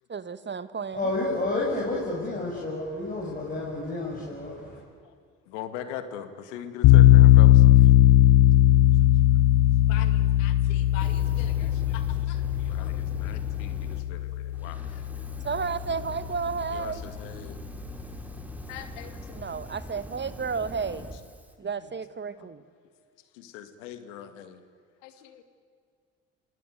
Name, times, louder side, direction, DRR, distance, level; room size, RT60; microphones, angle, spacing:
voice 1, 0.1-1.1 15.4-17.0 19.3-21.1 21.6-22.6, right 5 dB, 30° right, 14 dB, 1.3 m, -32 dB
voice 2, 0.9-4.8, left 2 dB, 25° left, -4 dB, 6.9 m, -30 dB
voice 3, 5.5-7.9 9.8-15.1 16.7-17.6 18.7-19.5 20.9-21.0 22.4-22.5 23.3-24.7 25.0-25.4, left 9 dB, 85° left, 10 dB, 2.1 m, -42 dB
sound 1, 6.8-15.7, left 14 dB, 70° left, 0.9 m, -19 dB
Fire, 10.9-14.1 14.5-21.5, equal, 5° right, 3.5 m, -42 dB
29.0 x 18.5 x 9.4 m, 2.1 s
hypercardioid pair, 65°, 36 cm